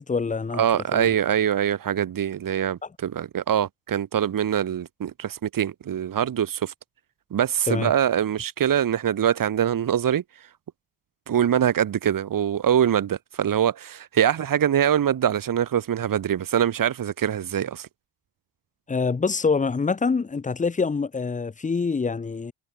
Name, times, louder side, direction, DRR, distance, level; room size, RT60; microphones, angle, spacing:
voice 1, 0.0-0.6 0.9-1.1 7.7-7.9 18.9-22.5, left 4 dB, 20° left, 0.8 m, -25 dB
voice 2, 0.5-6.7 7.3-10.2 11.3-17.9, right 9 dB, 50° right, 2.0 m, -23 dB
cardioid pair, 90°, 42 cm